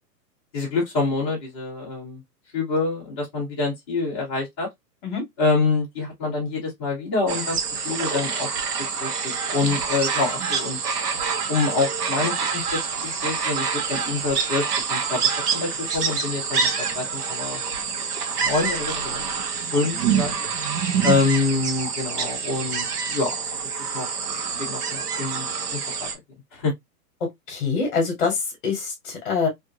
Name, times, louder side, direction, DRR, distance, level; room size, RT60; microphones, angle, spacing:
voice 1, 0.5-2.2 2.5-4.7 5.4-7.6 7.8-8.5 9.0-10.8 11.5-14.6 14.9-15.2 15.5-17.6 18.4-19.2 19.7-20.3 21.0-23.3 23.9-24.1 24.6-25.5 25.7-26.1 26.5-26.7, left 3 dB, 15° left, 0.7 m, -26 dB
sound 1, 7.3-26.1, right 6 dB, 65° right, 0.9 m, -26 dB
voice 2, 27.5-29.5, left 5 dB, 30° left, 1.3 m, -25 dB
2.6 x 2.4 x 2.6 m
hypercardioid pair, 170°, 50 cm